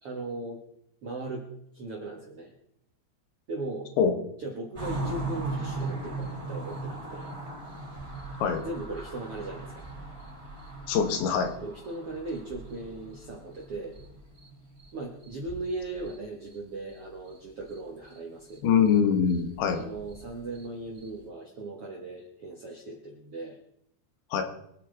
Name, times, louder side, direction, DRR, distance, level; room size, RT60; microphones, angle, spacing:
voice 1, 0.0-0.6 1.0-1.5 1.7-2.5 3.5-3.9 4.4-7.3 8.6-9.9 11.6-14.0 14.9-18.8 19.7-23.6, right 2 dB, 60° right, -1 dB, 1.5 m, -38 dB
sound 1, 4.7-14.9 15.2-16.2 16.4-16.6 16.9-17.8 18.0-18.2 18.5-21.2, right 2 dB, 5° right, 3.3 m, -39 dB
voice 2, 10.9-11.6 18.6-19.8 24.3-24.4, left 7 dB, 75° left, 6 dB, 3.7 m, -23 dB
25.0 x 8.6 x 3.9 m, 0.75 s
omnidirectional pair, 5.2 m